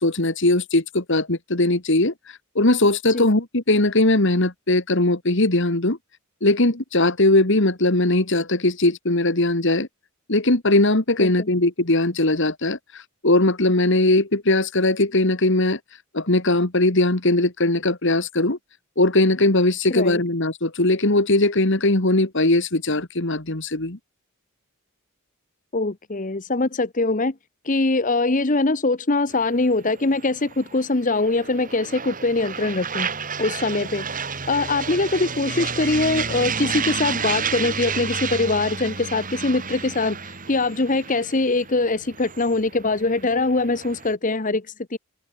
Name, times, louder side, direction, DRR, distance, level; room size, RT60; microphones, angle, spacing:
voice 1, 0.0-2.1 2.6-6.0 6.4-9.9 10.3-12.8 13.2-15.8 16.1-18.6 19.0-24.0, left 2 dB, 55° left, 2.1 m, -20 dB
voice 2, 25.7-27.3 27.6-33.1 33.4-34.0 34.5-45.0, left 3 dB, 35° left, 1.0 m, -23 dB
sound 1, 29.3-44.1, right 5 dB, 35° right, 7.0 m, -31 dB
head